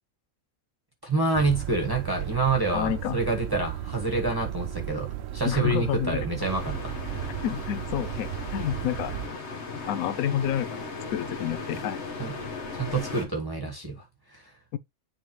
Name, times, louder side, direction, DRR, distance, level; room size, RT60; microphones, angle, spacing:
voice 1, 1.0-7.3 12.2-12.3 12.7-14.4, right 3 dB, 15° right, 1.3 m, -28 dB
sound 1, 1.3-9.3, right 12 dB, 65° right, 0.7 m, -35 dB
voice 2, 2.7-3.2 5.4-6.3 7.4-9.1 9.9-12.0 14.7-14.8, left 10 dB, 85° left, 1.1 m, -29 dB
sound 2, 6.4-13.3, left 4 dB, 55° left, 1.5 m, -37 dB
9.9 x 3.6 x 3.0 m
omnidirectional pair, 1.4 m